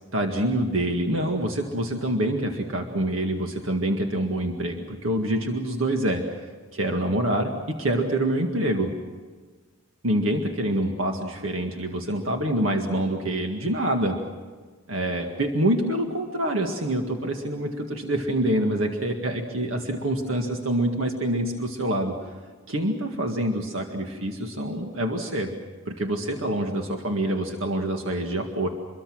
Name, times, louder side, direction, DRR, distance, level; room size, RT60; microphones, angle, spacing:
voice 1, 0.1-6.5 6.7-8.9 10.0-14.2 14.9-22.2 22.7-25.5 25.9-28.7, right 1 dB, 70° right, 3 dB, 1.9 m, -26 dB
26.0 x 22.5 x 6.3 m, 1.5 s
head